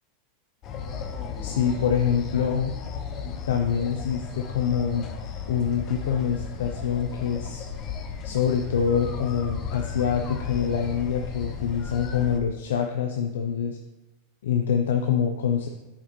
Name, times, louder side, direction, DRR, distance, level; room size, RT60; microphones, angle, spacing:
sound 1, 0.6-12.4, left 6 dB, 40° left, 0.8 m, -35 dB
voice 1, 1.4-2.8 3.5-5.1 5.5-7.7 8.2-13.8 14.4-15.7, left 7 dB, 85° left, 4 dB, 0.6 m, -25 dB
8.7 x 4.9 x 3.1 m, 1.0 s
supercardioid pair, 125°, 0 cm